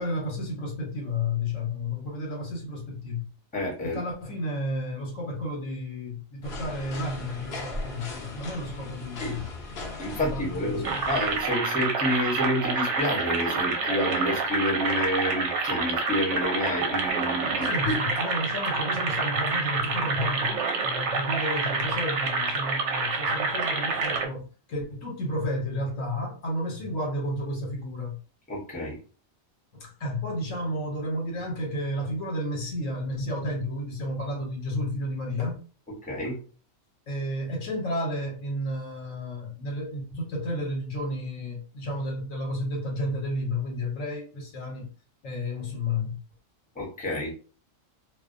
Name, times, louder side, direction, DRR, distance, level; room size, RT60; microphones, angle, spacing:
voice 1, 0.0-3.2 3.8-9.4 10.1-11.0 17.6-28.2 29.7-35.6 37.1-44.9 45.2-46.2, left 1 dB, 70° left, 1.2 m, -32 dB
voice 2, 3.5-4.0 9.2-9.3 10.0-17.9 28.5-29.0 36.0-36.4 46.7-47.3, left 1 dB, 10° left, 0.7 m, -29 dB
sound 1, 6.4-11.5, left 2 dB, 55° left, 0.8 m, -38 dB
sound 2, 10.8-24.3, right 4 dB, 65° right, 0.9 m, -27 dB
2.5 x 2.1 x 2.5 m
omnidirectional pair, 1.4 m